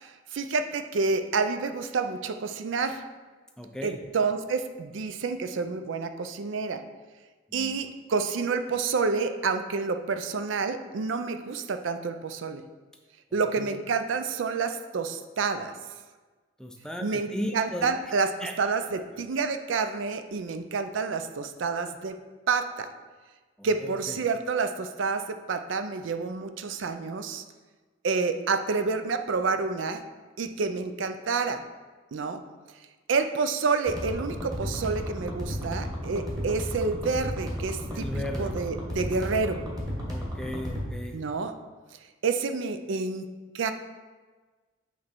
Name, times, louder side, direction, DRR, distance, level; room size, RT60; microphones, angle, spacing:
voice 1, 0.0-3.0 3.8-6.8 7.5-12.6 13.3-15.7 17.0-18.3 18.6-22.1 22.5-22.9 23.6-27.4 28.0-30.0 30.4-31.6 32.1-32.4 33.1-38.1 38.4-39.6 41.1-41.5 42.2-43.3 43.5-43.7, right 4 dB, 70° right, 8 dB, 0.4 m, -28 dB
voice 2, 3.6-4.0 7.5-7.7 13.3-13.8 16.6-17.9 18.4-18.5 23.6-24.1 37.9-38.5 40.1-41.2, left 1 dB, 5° left, 3 dB, 0.4 m, -36 dB
sound 1, 33.9-40.9, equal, 20° right, 1.3 m, -34 dB
8.2 x 3.1 x 4.4 m, 1.3 s
head